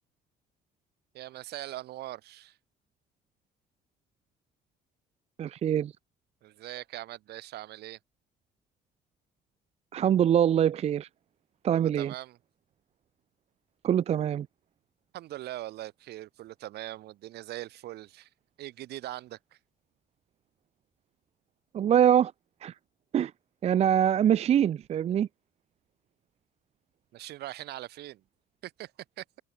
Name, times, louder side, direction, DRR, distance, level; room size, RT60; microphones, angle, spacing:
voice 1, 1.1-2.6 6.4-8.0 11.7-12.4 15.1-18.3 18.6-19.6 27.1-28.2 28.6-28.9 29.2-29.3, right 15 dB, 75° right, 4.0 m, -41 dB
voice 2, 5.4-5.9 9.9-11.1 11.6-12.1 13.8-14.5 21.7-22.3 22.6-22.7 23.1-23.3 23.6-25.3, right 9 dB, 40° right, 0.4 m, -24 dB
cardioid pair, 110°, 17 cm